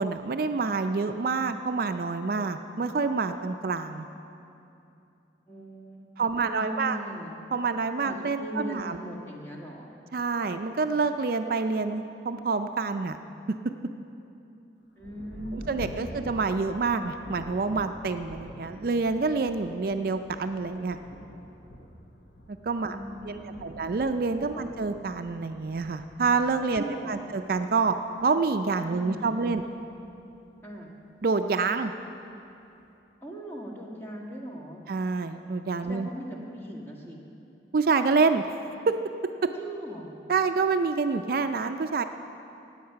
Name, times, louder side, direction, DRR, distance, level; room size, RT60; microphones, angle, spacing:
voice 1, 0.0-4.1 6.2-7.0 7.5-9.0 10.1-13.2 13.5-13.7 15.5-21.0 22.6-23.0 23.2-28.0 28.2-29.6 31.2-31.9 34.9-36.1 37.7-38.6 38.9-39.0 39.4-39.5 40.3-42.0, right 4 dB, 55° right, 8 dB, 0.4 m, -27 dB
voice 2, 5.5-7.3 8.0-9.9 14.9-16.4 22.8-23.9 24.5-24.7 26.8-27.3 28.9-29.7 30.6-30.9 33.2-34.8 35.9-37.2 39.6-40.2, right 1 dB, 15° left, -3 dB, 1.7 m, -40 dB
Thunder, 15.0-31.1 31.8-31.9 32.5-32.9, equal, 90° left, 1.1 m, -47 dB
18.0 x 8.0 x 5.7 m, 2.7 s
head